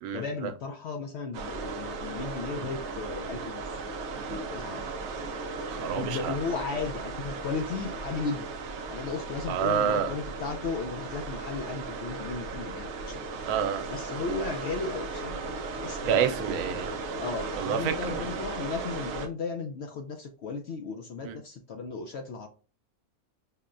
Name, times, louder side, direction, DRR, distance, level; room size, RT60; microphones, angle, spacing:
voice 1, 0.1-3.8 4.5-4.8 6.0-8.4 8.9-13.3 13.9-16.3 17.2-22.5, left 4 dB, 65° left, 0.7 m, -35 dB
sound 1, 1.3-19.3, right 3 dB, 65° right, 0.7 m, -36 dB
voice 2, 5.7-6.3 9.5-10.1 13.4-13.9 16.1-17.0 17.6-18.3 21.2-21.4, right 8 dB, 85° right, 1.1 m, -28 dB
5.7 x 2.1 x 2.4 m
omnidirectional pair, 1.5 m